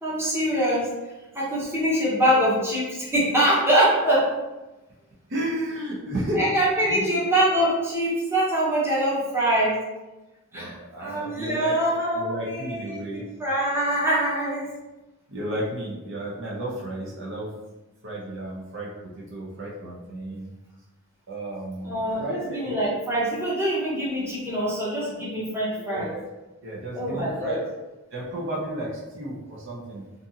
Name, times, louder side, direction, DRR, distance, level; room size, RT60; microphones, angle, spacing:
voice 1, 0.0-0.9 1.3-4.3 6.3-9.8 10.5-10.7 11.0-14.7 21.8-26.1 26.9-27.6, right 1 dB, 10° right, -8 dB, 0.8 m, -24 dB
voice 2, 5.3-6.4 6.8-7.1 10.5-11.7 12.1-13.2 15.3-17.5 18.0-18.9 19.2-20.5 21.3-22.6 25.7-26.2 26.6-27.6 28.1-30.0, right 1 dB, 55° right, -4 dB, 0.6 m, -32 dB
2.6 x 2.6 x 2.7 m, 1.1 s
head